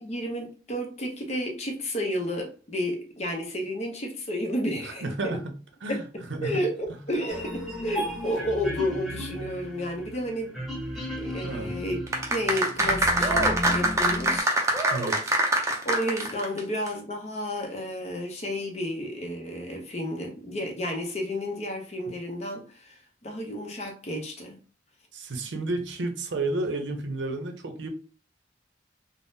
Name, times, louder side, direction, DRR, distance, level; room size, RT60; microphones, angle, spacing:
voice 1, 0.0-5.4 5.9-6.0 6.4-10.5 11.2-12.0 12.3-14.5 15.8-24.6, equal, 35° left, 2 dB, 0.6 m, -31 dB
voice 2, 4.8-5.5 5.8-6.0 6.3-6.6 11.4-11.7 14.9-15.4 25.1-27.9, right 2 dB, 80° right, 5 dB, 0.6 m, -31 dB
sound 1, 7.3-14.4, equal, ahead, 0.8 m, -35 dB
sound 2, 12.1-16.6 16.9-17.0, right 1 dB, 15° right, 0.5 m, -24 dB
3.5 x 2.0 x 2.6 m, 0.39 s
head